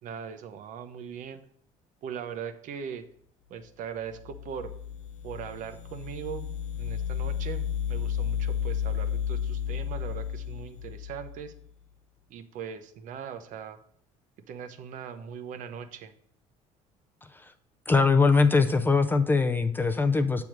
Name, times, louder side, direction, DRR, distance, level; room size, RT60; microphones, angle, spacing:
voice 1, 0.0-1.4 2.0-3.0 3.5-4.7 5.2-6.5 6.7-11.5 12.3-13.8 14.5-16.1, right 7 dB, 60° right, 9 dB, 0.7 m, -40 dB
sound 1, 4.1-11.6, left 8 dB, 60° left, 0.8 m, -32 dB
voice 2, 17.9-20.4, left 4 dB, 15° left, 8 dB, 0.4 m, -22 dB
7.5 x 3.5 x 6.0 m, 0.64 s
cardioid pair, 125°, 15 cm